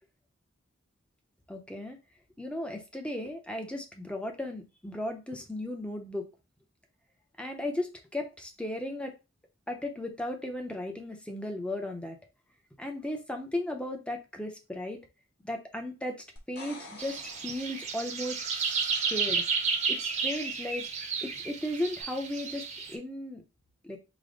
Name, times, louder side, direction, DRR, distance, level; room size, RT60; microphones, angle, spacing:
voice 1, 1.5-2.0 2.4-6.3 7.4-9.1 9.7-12.2 12.8-15.0 15.4-16.1 16.5-18.7 19.1-19.4 19.9-20.8 21.2-23.4 23.8-24.0, left 1 dB, 5° left, 4 dB, 0.6 m, -36 dB
sound 1, 16.4-18.3 22.0-22.1, left 2 dB, 55° left, 1.1 m, -48 dB
sound 2, 17.0-22.9, right 5 dB, 35° right, 0.7 m, -32 dB
5.0 x 2.1 x 3.8 m, 0.28 s
head